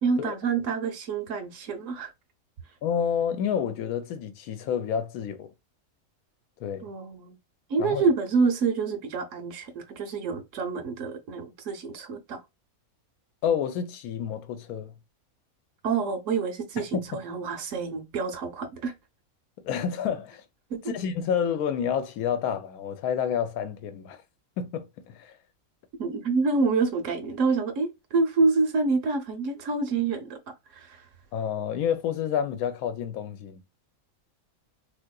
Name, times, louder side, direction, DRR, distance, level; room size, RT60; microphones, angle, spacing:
voice 1, 0.0-2.1 6.8-7.3 7.7-12.4 15.8-18.9 20.7-21.0 26.0-30.4 30.7-31.0, right 4 dB, 65° right, 0.9 m, -27 dB
voice 2, 2.8-5.5 6.6-6.9 7.8-8.1 13.4-14.9 16.8-17.0 19.6-20.4 20.9-24.2 24.6-25.4 31.3-33.6, left 8 dB, 90° left, 1.1 m, -29 dB
3.6 x 2.7 x 2.2 m
omnidirectional pair, 1.5 m